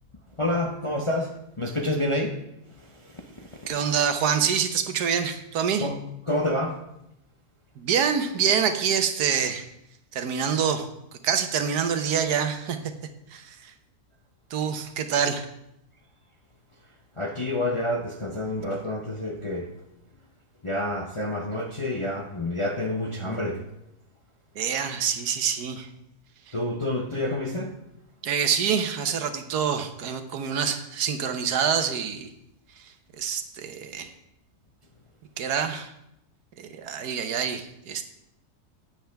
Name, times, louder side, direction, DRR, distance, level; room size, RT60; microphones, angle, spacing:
voice 1, 0.4-2.4 5.8-6.0 6.3-6.8 17.2-19.7 20.6-23.6 26.5-27.7, left 1 dB, 35° left, 2 dB, 0.5 m, -28 dB
voice 2, 3.7-5.9 7.8-9.7 10.1-10.9 11.2-12.9 13.3-13.7 14.5-15.5 24.5-25.9 26.5-26.6 28.2-32.3 32.8-34.1 35.4-35.9 36.6-38.0, right 7 dB, 80° right, 8 dB, 1.5 m, -26 dB
13.0 x 9.1 x 3.5 m, 0.83 s
omnidirectional pair, 1.7 m